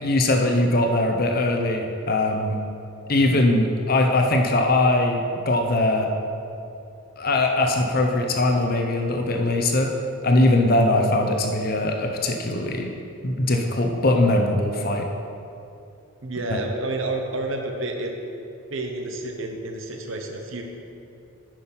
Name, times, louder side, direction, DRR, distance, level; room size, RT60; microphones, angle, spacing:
voice 1, 0.0-2.6 3.1-6.1 7.2-9.9 10.2-12.9 13.2-15.1 16.5-16.6, left 2 dB, 45° left, 3 dB, 0.8 m, -21 dB
voice 2, 16.2-18.1 18.7-20.6, right 2 dB, 65° right, 3 dB, 0.9 m, -29 dB
9.5 x 6.2 x 5.9 m, 2.7 s
head